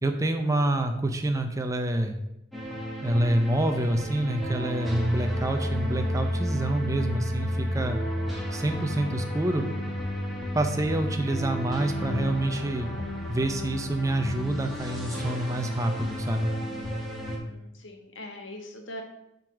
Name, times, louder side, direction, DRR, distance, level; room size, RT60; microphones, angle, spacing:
voice 1, 0.0-2.2 3.0-8.0 8.5-9.6 10.5-12.9 13.3-16.5, right 1 dB, 15° right, 5 dB, 0.6 m, -27 dB
sound 1, 2.5-17.4, equal, ahead, 1.3 m, -32 dB
voice 2, 17.2-19.0, left 1 dB, 80° left, 3 dB, 1.4 m, -42 dB
7.2 x 3.9 x 6.0 m, 0.83 s
head